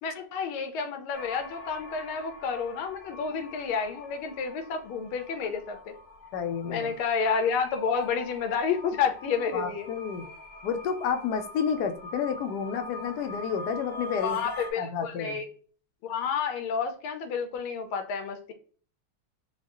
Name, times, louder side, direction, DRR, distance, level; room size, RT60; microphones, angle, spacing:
voice 1, 0.0-5.9 6.6-9.9 14.2-15.5 16.0-18.5, left 6 dB, 90° left, 7 dB, 1.6 m, -30 dB
sound 1, 1.1-14.7, left 1 dB, 50° left, 0.9 m, -44 dB
voice 2, 6.3-6.9 9.5-10.3 10.6-14.4 14.8-15.4, left 7 dB, 70° left, 5 dB, 1.0 m, -30 dB
4.5 x 2.4 x 2.9 m, 0.43 s
omnidirectional pair, 2.2 m